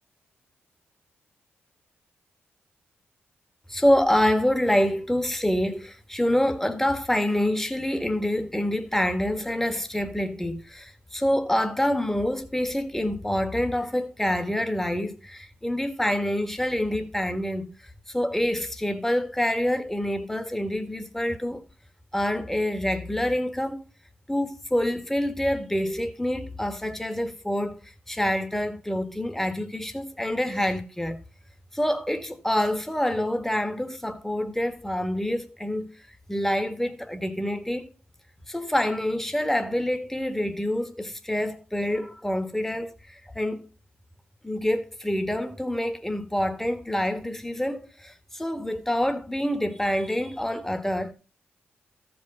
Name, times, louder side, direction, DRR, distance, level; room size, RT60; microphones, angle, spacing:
voice 1, 3.7-17.7 18.1-21.6 22.1-23.8 24.3-31.2 31.7-35.9 36.3-37.9 38.5-43.7 44.4-51.1, left 1 dB, 5° left, 1.6 m, -26 dB
13.5 x 5.3 x 5.4 m
supercardioid pair, 55°, 5 cm